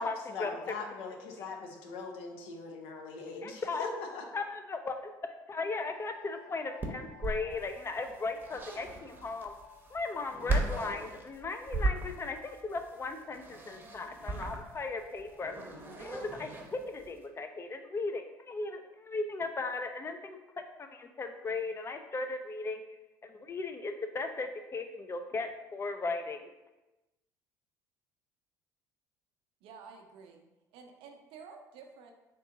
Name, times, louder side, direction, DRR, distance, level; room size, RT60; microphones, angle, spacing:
voice 1, 0.0-4.2, left 4 dB, 70° left, 2 dB, 0.7 m, -40 dB
voice 2, 3.4-3.9 4.3-9.5 9.9-15.5 16.0-20.4 20.8-22.8 23.2-26.5, left 3 dB, 25° left, 6 dB, 0.5 m, -37 dB
sound 1, 5.7-11.5 11.8-17.8, left 3 dB, 50° left, 1.1 m, -58 dB
sound 2, 6.8-17.2, right 2 dB, 20° right, 0.8 m, -37 dB
voice 3, 29.6-30.4 30.7-32.1, right 5 dB, 65° right, 3 dB, 0.6 m, -51 dB
3.8 x 2.8 x 3.7 m, 1.0 s
hypercardioid pair, 60°, 10 cm